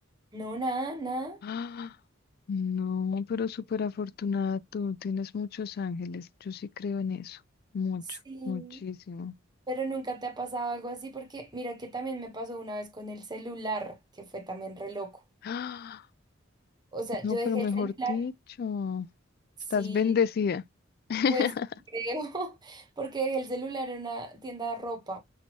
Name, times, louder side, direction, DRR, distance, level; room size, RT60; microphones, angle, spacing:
voice 1, 0.3-1.4 8.3-8.8 9.7-15.2 16.9-18.2 19.7-20.1 21.3-21.5 21.9-25.2, right 2 dB, 20° right, 1.1 m, -34 dB
voice 2, 1.4-2.0 2.5-7.4 7.7-8.2 8.5-9.3 15.4-16.0 17.2-18.3 18.6-19.1 19.7-20.6 21.1-21.7, left 6 dB, 50° left, 0.3 m, -31 dB
6.2 x 2.7 x 3.0 m
head